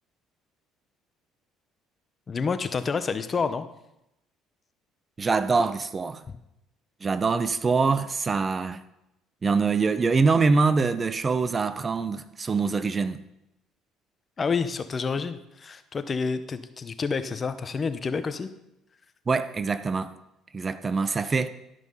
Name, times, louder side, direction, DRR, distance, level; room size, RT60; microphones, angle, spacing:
voice 1, 2.3-3.6 6.3-6.4 14.4-18.5 21.1-21.2, left 5 dB, 35° left, 0.8 m, -29 dB
voice 2, 5.2-6.2 7.0-8.8 9.4-13.2 19.3-20.1 20.5-21.5, right 4 dB, 30° right, 0.6 m, -24 dB
12.5 x 5.9 x 5.5 m
supercardioid pair, 80°, 0 cm